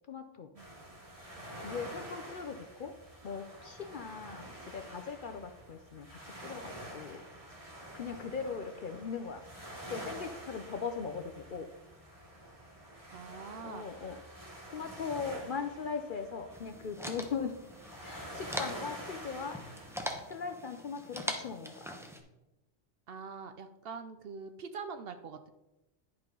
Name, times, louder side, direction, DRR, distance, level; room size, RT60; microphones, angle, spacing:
voice 1, 0.1-0.5 1.6-2.9 3.2-7.2 7.9-9.4 9.9-11.7 13.6-14.2 14.7-17.5 18.0-19.6 20.3-21.9, left 5 dB, 55° left, 7 dB, 0.6 m, -39 dB
sound 1, 0.6-20.1, right 1 dB, 25° right, 2.5 m, -48 dB
voice 2, 1.4-1.7 13.1-13.9 23.1-25.5, right 5 dB, 60° right, 8 dB, 0.7 m, -44 dB
sound 2, 16.5-22.2, equal, 5° right, 0.7 m, -42 dB
10.5 x 5.6 x 3.7 m, 0.99 s
omnidirectional pair, 1.3 m